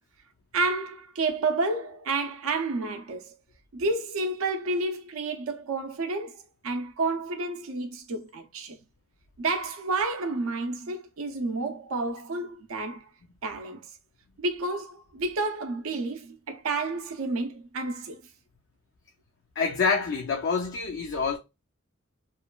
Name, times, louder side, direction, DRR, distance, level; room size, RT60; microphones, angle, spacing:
voice 1, 0.5-3.3 3.7-8.8 9.4-13.1 13.4-13.9 14.4-18.2, right 3 dB, 75° right, 0.5 m, -30 dB
voice 2, 19.6-21.4, left 5 dB, 60° left, 0.4 m, -26 dB
3.0 x 2.2 x 2.3 m
head